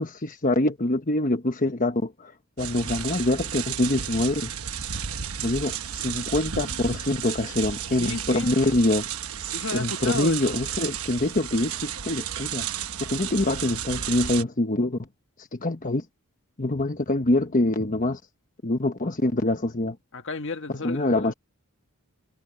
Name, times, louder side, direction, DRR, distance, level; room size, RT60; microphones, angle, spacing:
voice 1, 0.0-2.3 2.6-4.5 5.4-9.0 9.7-12.7 13.1-15.0 15.5-16.0 16.6-18.2 18.6-20.0 20.8-21.3, left 2 dB, 35° left, 1.1 m, -25 dB
sound 1, 2.6-14.4, right 9 dB, 75° right, 1.1 m, -33 dB
voice 2, 8.0-8.8 9.5-10.6 20.1-21.3, left 3 dB, 55° left, 1.4 m, -33 dB
head